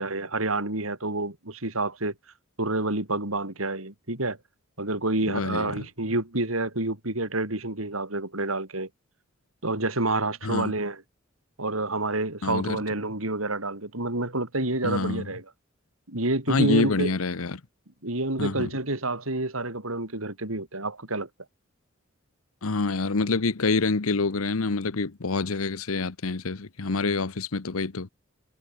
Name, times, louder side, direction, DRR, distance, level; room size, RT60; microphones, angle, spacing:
voice 1, 0.0-2.1 2.6-4.4 4.8-8.9 9.6-11.0 11.6-15.4 16.1-17.1 18.0-21.3, right 2 dB, 80° right, 5.0 m, -28 dB
voice 2, 5.3-5.8 10.4-10.7 12.4-12.8 14.8-15.3 16.5-17.6 18.4-18.7 22.6-28.1, left 3 dB, 85° left, 1.0 m, -27 dB
head